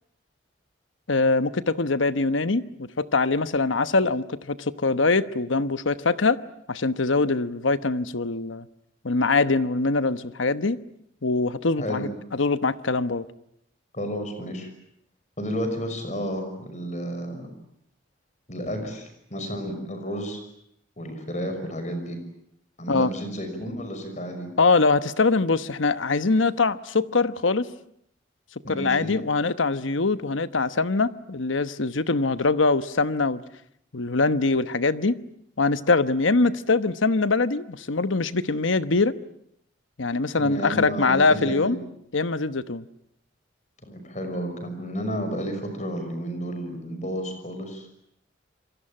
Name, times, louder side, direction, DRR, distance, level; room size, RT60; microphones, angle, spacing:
voice 1, 1.1-6.4 6.7-8.7 9.0-10.8 11.2-13.3 22.9-23.1 24.6-27.7 28.7-33.4 33.9-35.2 35.6-39.1 40.0-41.8 42.1-42.9, left 3 dB, 85° left, 1.1 m, -23 dB
voice 2, 11.8-12.1 13.9-14.7 15.4-17.5 18.5-20.4 21.0-22.2 22.8-24.5 28.6-29.1 40.4-41.8 43.8-47.9, equal, 40° left, 6.0 m, -32 dB
27.5 x 23.0 x 8.8 m
head